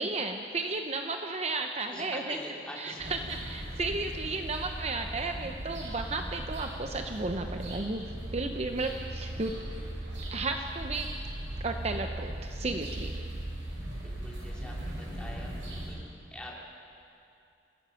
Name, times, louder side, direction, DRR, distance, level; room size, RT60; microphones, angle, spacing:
voice 1, 0.0-2.4 2.8-3.2 3.4-8.0 8.3-9.6 10.3-11.1 11.6-13.1, right 3 dB, 35° right, 5 dB, 0.7 m, -33 dB
voice 2, 1.8-3.4 14.0-16.0 16.3-16.6, left 1 dB, 5° left, -3 dB, 3.1 m, -44 dB
sound 1, 3.0-15.9, right 1 dB, 90° right, 6.2 m, -38 dB
27.5 x 16.5 x 5.8 m, 2.6 s
head